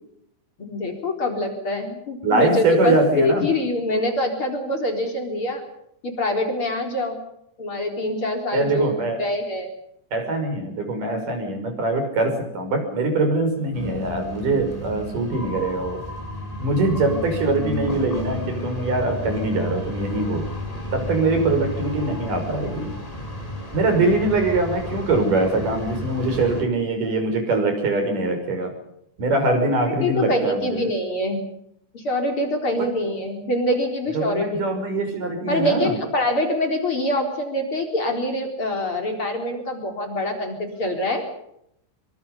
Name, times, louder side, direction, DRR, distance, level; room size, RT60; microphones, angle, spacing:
voice 1, 0.6-5.6 6.0-7.2 7.6-8.9 9.2-9.7 29.7-31.4 31.9-34.7 35.5-41.2, left 1 dB, 40° left, 3 dB, 4.8 m, -24 dB
voice 2, 2.2-3.5 8.5-9.2 10.1-16.0 16.6-20.5 20.9-22.9 23.7-28.7 29.2-30.9 32.8-32.9 34.1-35.9, right 2 dB, 85° right, 6 dB, 7.5 m, -23 dB
sound 1, 13.7-26.6, left 1 dB, 10° left, 4.9 m, -32 dB
26.0 x 24.0 x 5.5 m, 0.76 s
omnidirectional pair, 3.6 m